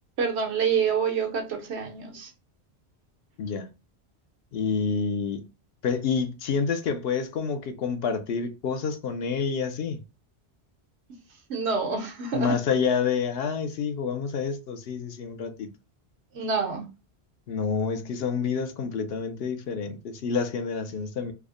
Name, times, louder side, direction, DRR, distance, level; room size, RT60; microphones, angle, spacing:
voice 1, 0.2-2.3 11.5-12.6 16.3-16.8, right 6 dB, 85° right, 1.1 m, -27 dB
voice 2, 3.4-3.7 4.5-5.4 5.8-10.0 12.3-15.7 17.5-21.3, left 6 dB, 70° left, 0.8 m, -28 dB
3.4 x 2.1 x 3.6 m
omnidirectional pair, 1.1 m